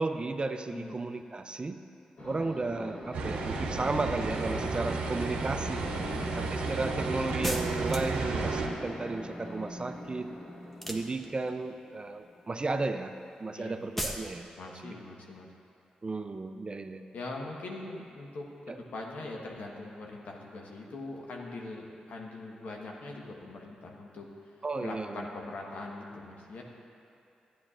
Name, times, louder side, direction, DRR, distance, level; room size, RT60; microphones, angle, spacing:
voice 1, 0.0-1.8 2.2-5.9 6.4-10.3 10.9-13.1 13.4-14.5 14.8-14.9 16.0-17.0 18.7-18.8 24.6-25.3, right 3 dB, 35° right, 8 dB, 0.5 m, -34 dB
sound 1, 2.2-13.2, equal, 55° left, 2.3 m, -43 dB
sound 2, 3.1-8.7, right 3 dB, 90° right, 0.8 m, -32 dB
voice 2, 6.0-6.3 13.5-13.8 14.6-15.5 17.1-24.5 24.8-26.6, left 2 dB, 75° left, 0 dB, 1.2 m, -42 dB
sound 3, 7.4-8.3 10.7-11.6 14.0-14.3, equal, 5° left, 1.0 m, -35 dB
12.5 x 10.0 x 2.5 m, 2.7 s
supercardioid pair, 45°, 3 cm